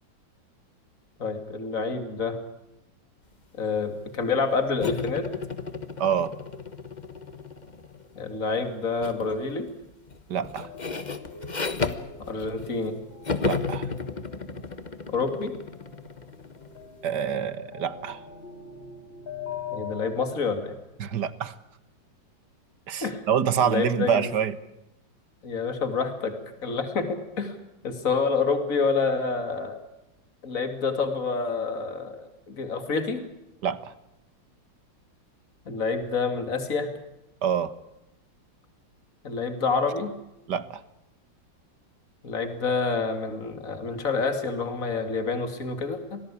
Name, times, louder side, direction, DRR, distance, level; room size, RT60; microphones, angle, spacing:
voice 1, 1.2-2.4 3.5-5.3 8.2-9.7 12.2-13.0 15.1-15.5 19.7-20.8 23.0-23.2 23.6-24.3 25.4-26.3 26.6-27.6 27.8-29.8 30.4-33.2 35.7-36.9 39.2-40.1 42.2-46.2, left 4 dB, 45° left, 8 dB, 3.1 m, -28 dB
sound 1, 4.8-8.1 9.0-9.3 9.7-12.9 13.2-16.8, left 4 dB, 25° left, 1.3 m, -33 dB
voice 2, 6.0-6.3 10.3-10.7 13.4-13.9 17.0-18.2 21.0-21.6 22.9-24.6 33.6-33.9 37.4-37.7 40.5-40.8, right 8 dB, 65° right, 15 dB, 1.8 m, -26 dB
sound 2, 10.6-20.2, left 6 dB, 85° left, 4.2 m, -42 dB
27.0 x 19.0 x 8.6 m, 0.90 s
omnidirectional pair, 2.0 m